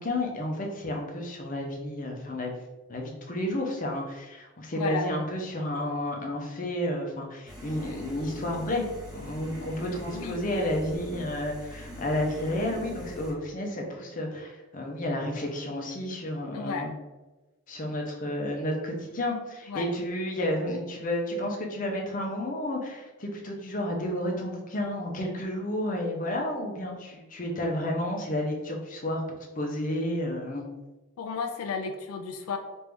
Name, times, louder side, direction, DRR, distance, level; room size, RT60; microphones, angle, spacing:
voice 1, 0.0-2.5 2.9-8.8 9.1-16.9 17.7-29.2 29.6-30.7, left 1 dB, 35° left, 0 dB, 0.6 m, -31 dB
voice 2, 4.7-5.1 10.1-10.4 16.5-16.9 19.7-19.9 31.2-32.6, left 5 dB, 85° left, 5 dB, 0.3 m, -33 dB
sound 1, 7.5-13.3, equal, 20° right, 1.1 m, -41 dB
3.2 x 2.5 x 3.3 m, 1.1 s
head